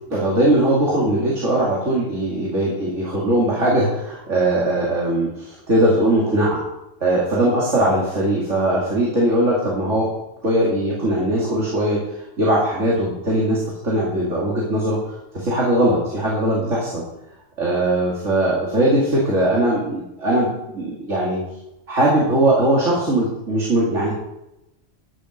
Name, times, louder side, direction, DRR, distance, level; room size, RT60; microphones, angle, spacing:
voice 1, 0.1-6.6 7.0-10.0 10.4-12.0 12.4-17.0 17.6-21.4 21.9-24.1, right 1 dB, 70° right, -5 dB, 2.8 m, -20 dB
12.5 x 6.8 x 6.4 m, 0.90 s
omnidirectional pair, 1.3 m